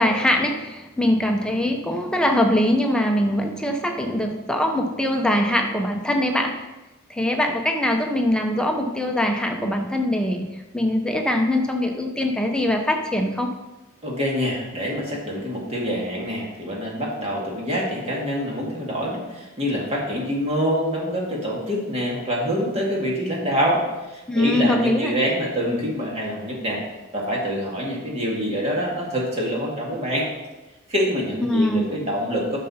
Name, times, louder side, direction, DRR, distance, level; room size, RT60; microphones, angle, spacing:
voice 1, 0.0-6.6 7.1-10.5 10.7-13.5 24.3-25.1 31.4-32.0, left 1 dB, 5° left, 2 dB, 0.7 m, -22 dB
voice 2, 14.0-23.8 24.1-26.8 27.1-30.3 30.9-32.6, equal, 30° right, -3 dB, 2.1 m, -25 dB
10.5 x 6.7 x 4.3 m, 1.1 s
head